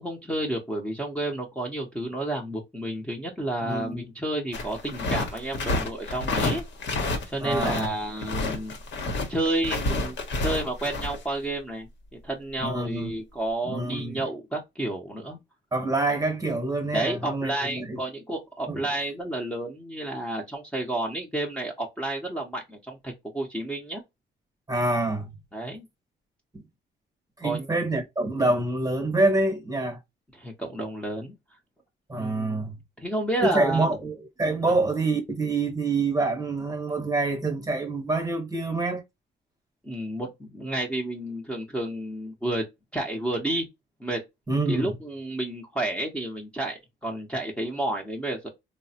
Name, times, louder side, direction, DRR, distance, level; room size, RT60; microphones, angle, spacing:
voice 1, 0.0-6.6 7.3-8.7 9.3-11.9 12.2-15.4 16.9-24.0 25.5-25.9 27.4-27.7 28.4-28.5 30.3-31.3 32.2-32.6 33.0-33.9 34.7-34.8 39.8-42.6 42.9-43.7 44.0-44.2 44.7-48.5, right 1 dB, 5° left, 0.8 m, -31 dB
voice 2, 3.6-4.0 7.4-7.9 12.6-13.1 13.7-14.2 15.7-18.0 18.7-18.9 24.7-25.3 26.5-26.6 27.4-30.0 32.1-32.8 33.4-39.0 44.5-44.9, right 2 dB, 15° right, 1.0 m, -26 dB
sound 1, 4.5-7.9 8.2-11.2, left 2 dB, 65° left, 0.9 m, -29 dB
3.2 x 2.1 x 2.7 m
cardioid pair, 90°, 20 cm